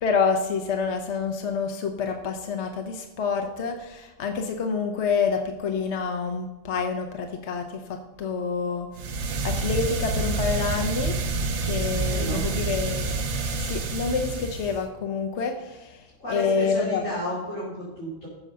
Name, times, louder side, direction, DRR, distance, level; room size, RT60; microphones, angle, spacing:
voice 1, 0.0-11.2 11.6-13.2 13.6-17.0, left 5 dB, 65° left, 5 dB, 1.0 m, -28 dB
sound 1, 8.9-14.9, right 3 dB, 65° right, 1.2 m, -28 dB
voice 2, 12.0-12.4 16.2-18.3, equal, 85° left, -9 dB, 3.8 m, -32 dB
15.0 x 6.4 x 5.5 m, 1.1 s
omnidirectional pair, 1.3 m